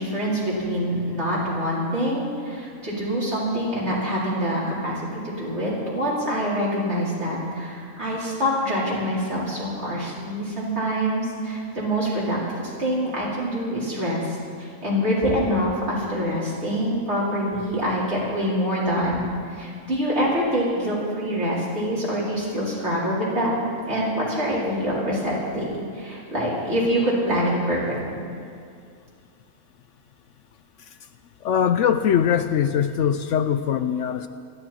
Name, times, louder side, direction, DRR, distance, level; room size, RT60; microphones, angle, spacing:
voice 1, 0.0-23.5 23.9-27.9, equal, 50° right, -7 dB, 4.9 m, -25 dB
voice 2, 31.4-34.3, left 8 dB, 70° left, 10 dB, 0.9 m, -21 dB
28.5 x 11.5 x 4.4 m, 2.3 s
omnidirectional pair, 1.4 m